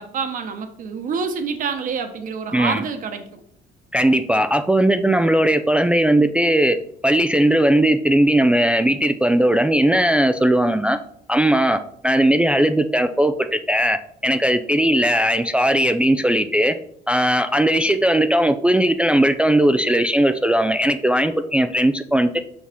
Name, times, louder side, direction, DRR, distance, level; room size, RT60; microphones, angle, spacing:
voice 1, 0.0-3.4, right 5 dB, 55° right, 7 dB, 1.2 m, -27 dB
voice 2, 2.5-2.8 3.9-6.8 7.0-11.0 11.3-16.8 17.1-22.4, right 1 dB, 5° right, 8 dB, 0.3 m, -18 dB
6.3 x 5.6 x 3.6 m, 0.67 s
cardioid pair, 110°, 17 cm